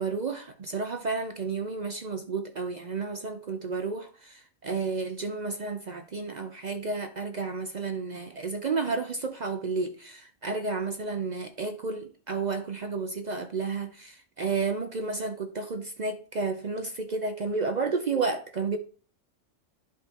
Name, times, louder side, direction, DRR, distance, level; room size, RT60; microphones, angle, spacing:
voice 1, 0.0-18.8, right 4 dB, 50° right, 0.5 m, -31 dB
10.5 x 3.6 x 4.1 m
omnidirectional pair, 1.4 m